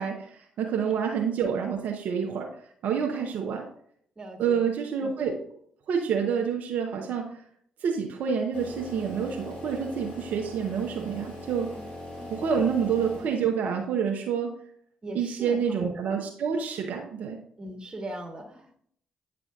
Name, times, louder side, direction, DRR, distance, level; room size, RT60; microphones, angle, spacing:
voice 1, 0.0-2.5 2.8-3.7 4.4-5.4 5.9-7.3 7.8-11.7 12.3-14.5 15.1-17.4, right 7 dB, 70° right, 1 dB, 0.8 m, -28 dB
voice 2, 4.2-4.6 11.7-12.5 15.0-15.6 17.6-18.8, right 1 dB, 30° right, 3 dB, 1.7 m, -40 dB
sound 1, 8.5-13.7, left 1 dB, 50° left, 2.8 m, -41 dB
9.3 x 4.9 x 2.4 m, 0.63 s
hypercardioid pair, 50°, 3 cm